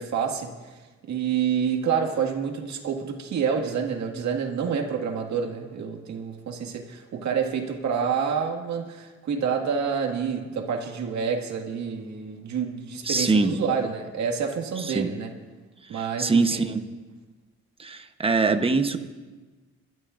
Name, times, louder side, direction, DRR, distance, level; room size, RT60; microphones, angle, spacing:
voice 1, 0.0-15.3 15.9-16.6, right 6 dB, 70° right, 3 dB, 2.0 m, -28 dB
voice 2, 13.0-13.5 14.8-15.1 15.9-16.8 17.8-19.0, right 3 dB, 20° right, 7 dB, 1.0 m, -23 dB
29.5 x 12.0 x 2.6 m, 1.3 s
cardioid pair, 90°, 30 cm